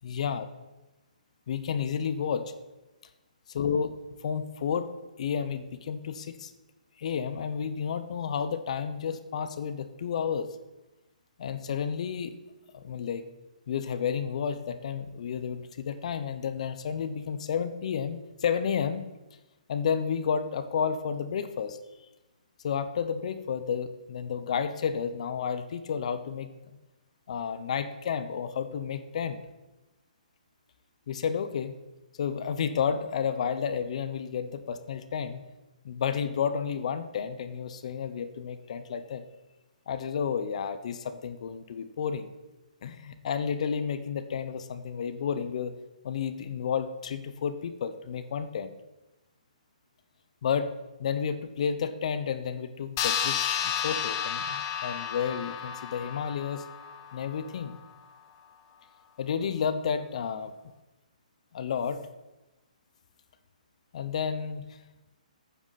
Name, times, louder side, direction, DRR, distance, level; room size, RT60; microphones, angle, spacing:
voice 1, 0.0-0.4 1.5-2.5 3.5-3.9 4.2-4.9 5.2-6.5 7.0-10.5 11.4-12.4 12.7-13.2 13.7-19.1 19.7-21.8 22.6-26.5 27.3-29.4 31.1-31.8 32.2-35.4 35.8-39.2 39.9-42.3 42.8-45.8 46.0-48.7 50.4-50.7 51.0-56.6 57.1-57.8 59.2-60.5 61.5-62.0 63.9-64.7, left 7 dB, 55° left, 11 dB, 0.8 m, -31 dB
sound 1, 53.0-57.8, left 8 dB, 30° left, 1.0 m, -32 dB
12.0 x 9.3 x 4.2 m, 1.0 s
hypercardioid pair, 145°, 4 cm